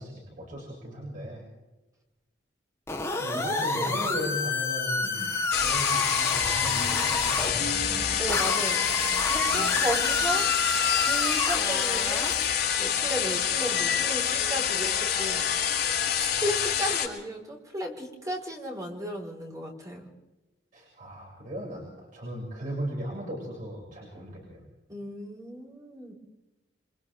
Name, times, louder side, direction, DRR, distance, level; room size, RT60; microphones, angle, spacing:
voice 1, 0.0-1.4 3.2-7.8 20.7-24.7, equal, 50° right, -5 dB, 7.5 m, -37 dB
sound 1, 2.9-7.5 8.3-12.5, left 3 dB, 15° left, 3.6 m, -29 dB
voice 2, 3.3-4.1 5.0-5.3 8.2-8.9 9.3-10.5 11.0-12.4 12.8-15.5 16.1-20.1 24.9-26.1, equal, 20° right, 0 dB, 5.2 m, -35 dB
sound 2, 5.5-17.1, left 8 dB, 65° left, 6.0 m, -27 dB
29.5 x 25.5 x 3.8 m, 1.1 s
head